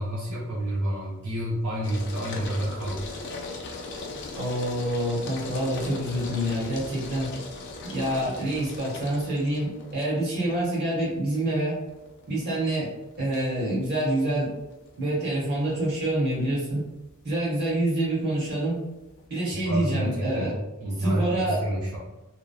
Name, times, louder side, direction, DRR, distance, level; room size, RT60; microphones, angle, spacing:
voice 1, 0.0-3.2 19.5-22.0, right 1 dB, 80° right, -6 dB, 0.6 m, -29 dB
sound 1, 1.8-19.3, left 3 dB, 55° left, 0.4 m, -40 dB
voice 2, 4.4-7.3 7.8-11.8 12.3-12.9 13.2-14.5 15.0-16.8 17.2-18.8 19.3-20.5 21.0-21.6, right 1 dB, 50° right, -6 dB, 1.0 m, -27 dB
2.7 x 2.0 x 2.2 m, 0.99 s
head